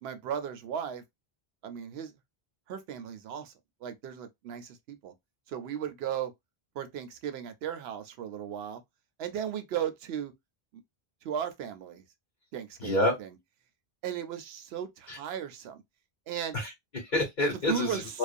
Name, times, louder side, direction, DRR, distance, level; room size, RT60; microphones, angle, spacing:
voice 1, 0.0-1.0 1.6-2.1 2.7-3.5 3.8-5.1 5.5-6.3 6.8-8.8 9.2-10.3 11.2-12.0 12.5-13.3 14.0-15.8 16.3-16.6 17.7-18.0, right 9 dB, 80° right, 0.8 m, -36 dB
voice 2, 12.8-13.1 15.1-15.2 16.5-18.2, left 1 dB, 55° left, 1.1 m, -28 dB
2.4 x 2.1 x 2.5 m
omnidirectional pair, 1.0 m